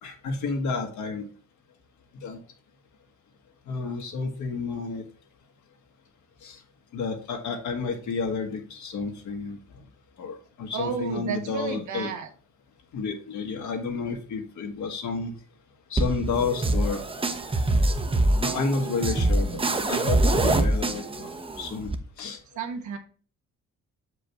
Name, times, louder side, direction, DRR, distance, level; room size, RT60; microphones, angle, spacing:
voice 1, 0.0-1.3 2.1-2.4 3.7-5.1 6.4-6.6 6.9-9.6 10.2-12.1 12.9-15.3 15.9-17.0 18.4-21.3 21.6-22.4, left 4 dB, 75° left, 3 dB, 1.7 m, -31 dB
voice 2, 10.7-12.3 22.6-23.0, right 6 dB, 75° right, 6 dB, 1.4 m, -31 dB
sound 1, 16.0-21.9, right 2 dB, 20° right, 0.8 m, -24 dB
6.8 x 5.2 x 3.4 m, 0.41 s
cardioid pair, 90°, 30 cm